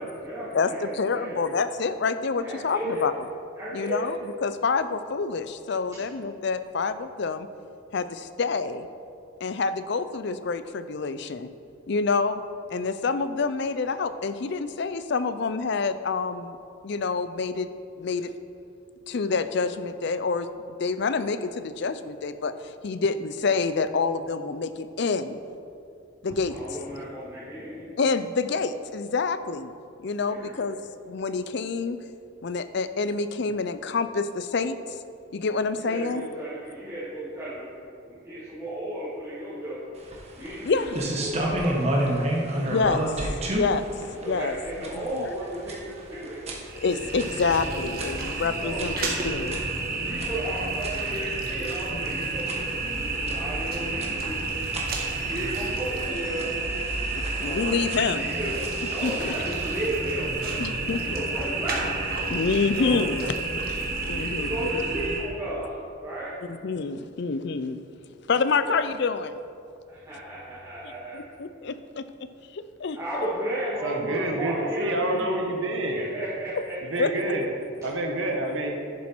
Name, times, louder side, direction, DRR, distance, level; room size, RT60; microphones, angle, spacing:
voice 1, 0.0-1.4 2.4-3.1 3.6-4.1 26.3-28.0 30.3-30.6 35.7-37.7 38.0-39.9 40.3-42.6 44.2-46.5 48.6-48.9 50.0-54.4 55.0-56.6 57.2-62.0 62.5-63.0 64.1-66.5 68.6-68.8 69.9-71.2 72.9-75.5 75.9-77.2, equal, 15° right, -12 dB, 2.1 m, -34 dB
voice 2, 0.5-3.1 3.7-7.5 7.9-8.9 9.4-11.5 11.9-12.4 12.7-16.6 16.8-17.7 18.0-18.3 19.1-20.5 20.8-25.4 26.2-26.6 28.0-29.7 30.0-30.8 31.1-32.0 32.4-34.8 35.3-36.2 40.6-41.1 42.7-43.0 43.5-43.8 44.1-44.5 44.9-45.2 46.8-49.6 57.4-58.3 59.0-59.3 60.6-61.0 62.3-63.3 64.1-64.5 66.5-67.8 68.3-69.4 71.1-72.1 72.5-73.0 77.0-77.4, left 4 dB, 55° left, 12 dB, 0.4 m, -27 dB
sound 1, 40.0-59.9, right 1 dB, 30° right, 1.2 m, -33 dB
sound 2, 46.6-65.2, right 3 dB, 50° right, 1.4 m, -30 dB
voice 3, 73.8-76.0 76.8-77.5 77.8-78.8, right 1 dB, 70° right, 2 dB, 1.3 m, -28 dB
11.0 x 7.2 x 4.5 m, 2.5 s
head